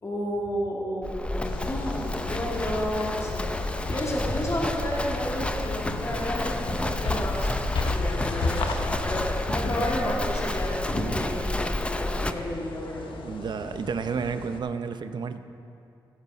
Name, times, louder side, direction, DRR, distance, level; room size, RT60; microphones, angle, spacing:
voice 1, 0.0-3.5 3.9-7.6 7.9-13.1, equal, 35° left, -4 dB, 2.5 m, -31 dB
Livestock farm animals working animals, 1.0-12.3, left 1 dB, 15° left, 0.6 m, -31 dB
sound 1, 1.4-14.6, left 3 dB, 85° left, 0.9 m, -35 dB
voice 2, 13.2-15.5, right 6 dB, 60° right, 10 dB, 0.6 m, -31 dB
15.0 x 8.2 x 5.0 m, 2.5 s
cardioid pair, 70°, 8 cm